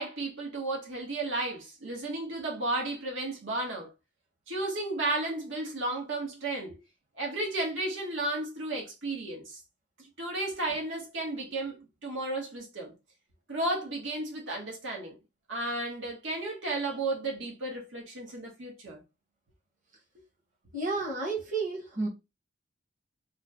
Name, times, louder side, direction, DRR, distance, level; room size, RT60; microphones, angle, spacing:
voice 1, 0.0-3.9 4.5-6.8 7.2-9.6 10.2-12.9 13.5-15.2 15.5-19.0, right 2 dB, 90° right, 1.1 m, -33 dB
voice 2, 20.7-22.1, right 3 dB, 45° right, 1.1 m, -31 dB
3.1 x 2.1 x 3.6 m
head